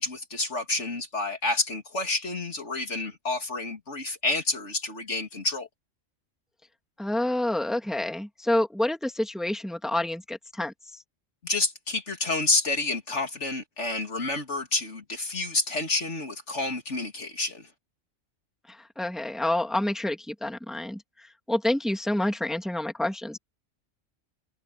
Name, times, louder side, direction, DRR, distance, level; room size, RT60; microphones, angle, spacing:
voice 1, 0.0-5.7 11.4-17.7, left 2 dB, 60° left, 3.1 m, -29 dB
voice 2, 7.0-10.7 18.7-23.4, left 1 dB, ahead, 2.3 m, -28 dB
omnidirectional pair, 1.3 m